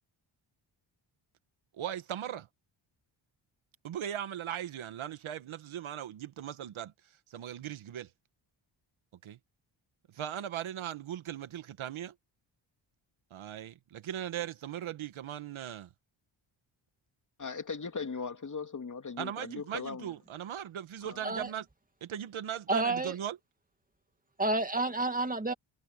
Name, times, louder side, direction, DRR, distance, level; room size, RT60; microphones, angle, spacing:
voice 1, 1.7-2.5 3.8-6.9 7.3-8.1 9.2-9.4 10.1-12.1 13.3-15.9 19.2-21.6 22.0-23.4, right 10 dB, 75° right, 1.6 m, -38 dB
voice 2, 17.4-20.1 21.0-21.2, left 5 dB, 35° left, 2.5 m, -38 dB
voice 3, 22.7-23.2 24.4-25.5, right 2 dB, 15° right, 2.3 m, -29 dB
cardioid pair, 85°, 49 cm